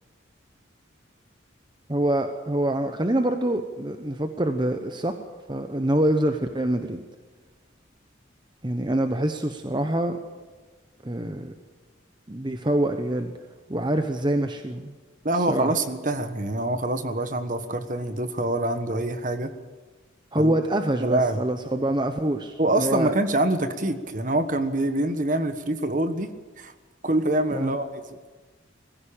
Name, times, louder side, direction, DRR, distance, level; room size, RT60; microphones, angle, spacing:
voice 1, 1.9-5.1 5.5-7.0 8.6-10.2 11.0-11.5 12.3-13.3 13.7-14.9 15.5-15.7 20.3-23.1 27.5-27.7, right 1 dB, 25° right, 6 dB, 1.0 m, -25 dB
voice 2, 15.2-19.5 20.4-20.6 21.0-21.4 22.6-26.3 26.6-26.7 27.0-28.2, right 1 dB, 40° right, 9 dB, 1.4 m, -25 dB
21.0 x 15.0 x 8.8 m, 1.3 s
head